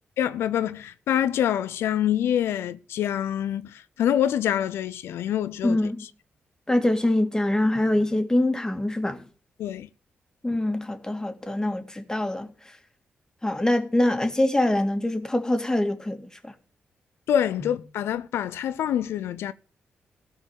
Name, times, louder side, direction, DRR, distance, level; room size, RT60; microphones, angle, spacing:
voice 1, 0.2-5.8 9.6-9.9 17.3-19.5, left 10 dB, 80° left, 0.5 m, -26 dB
voice 2, 5.6-6.0 6.7-9.2 10.4-12.8 13.4-16.5 17.6-17.7, left 1 dB, 15° left, 2.1 m, -24 dB
14.5 x 5.1 x 8.8 m
supercardioid pair, 50°, 4 cm